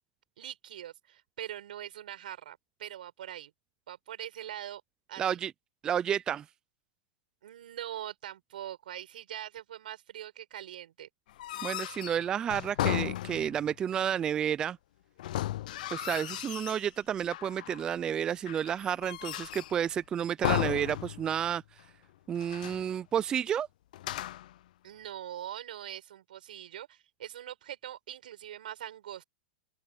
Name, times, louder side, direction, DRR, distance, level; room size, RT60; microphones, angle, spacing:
voice 1, 0.4-3.5 3.9-4.8 5.1-5.4 7.4-11.1 24.8-29.2, right 11 dB, 75° right, 6.3 m, -42 dB
voice 2, 5.2-5.5 5.8-6.4 11.6-14.8 15.9-21.6 22.3-23.7, right 9 dB, 15° right, 0.3 m, -31 dB
sound 1, 11.3-13.7 15.2-16.9 17.3-17.9 18.5-19.9 20.4-21.5 21.8-21.9 22.4-22.9 23.9-24.6, left 14 dB, 60° left, 0.6 m, -35 dB
open air
supercardioid pair, 155°, 5 cm